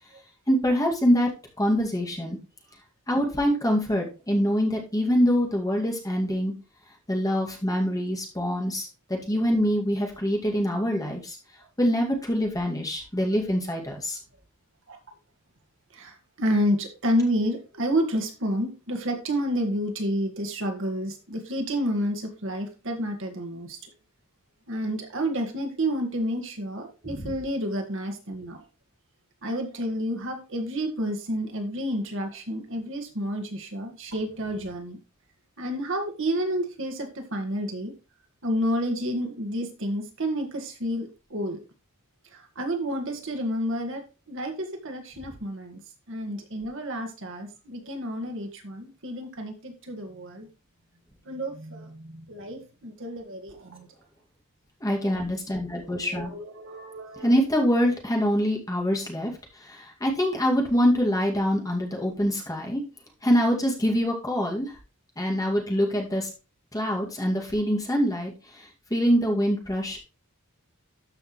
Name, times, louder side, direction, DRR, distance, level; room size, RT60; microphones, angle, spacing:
voice 1, 0.5-1.3 1.6-2.4 3.1-6.5 7.1-11.4 11.8-14.2 54.8-56.3 57.2-62.8 63.2-64.8 65.2-66.3 66.7-70.0, equal, 15° left, 0 dB, 2.2 m, -25 dB
voice 2, 15.9-23.9 24.7-28.6 29.4-35.0 35.6-37.9 38.4-41.6 42.3-45.8 46.1-50.5 51.2-53.9 55.8-57.3, equal, 60° right, 3 dB, 1.8 m, -30 dB
13.0 x 5.6 x 3.2 m, 0.31 s
head